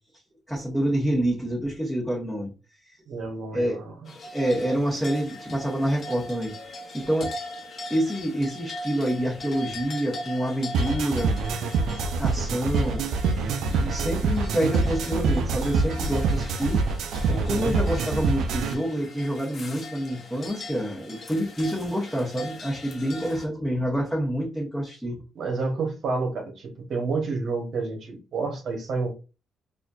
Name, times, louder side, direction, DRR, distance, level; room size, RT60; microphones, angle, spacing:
voice 1, 0.5-2.5 2.9-3.0 3.5-3.8 4.3-6.5 6.9-7.3 7.9-11.4 12.2-13.2 13.7-16.8 17.3-25.2, equal, ahead, 1.3 m, -27 dB
voice 2, 3.1-3.9 17.3-17.8 25.3-29.1, right 4 dB, 60° right, 1.1 m, -29 dB
sound 1, 4.1-23.5, left 1 dB, 50° left, 0.9 m, -40 dB
sound 2, 10.7-18.7, right 4 dB, 80° right, 0.4 m, -25 dB
4.2 x 2.6 x 2.5 m
cardioid pair, 90°, 0 cm